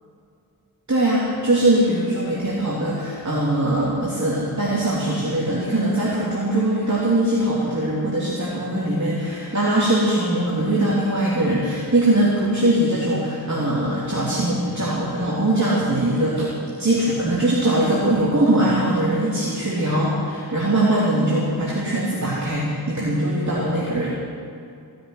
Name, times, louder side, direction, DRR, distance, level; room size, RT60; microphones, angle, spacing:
voice 1, 0.9-16.5 16.8-24.1, right 1 dB, 50° right, -7 dB, 3.1 m, -21 dB
16.5 x 7.7 x 9.6 m, 2.5 s
wide cardioid pair, 50°, 36 cm